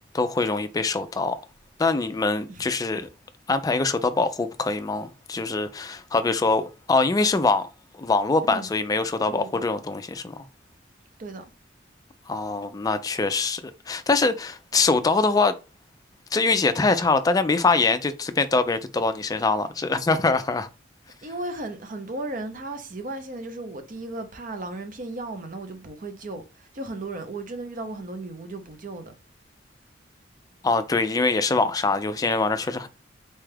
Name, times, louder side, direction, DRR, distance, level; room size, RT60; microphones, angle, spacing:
voice 1, 0.1-1.4 1.8-3.1 3.5-7.7 7.9-10.4 12.3-15.6 16.3-20.7 30.6-32.9, left 3 dB, 20° left, 0.3 m, -23 dB
voice 2, 9.3-9.7 11.2-11.4 21.2-29.1, right 2 dB, 45° right, 0.6 m, -35 dB
4.2 x 2.3 x 3.2 m
head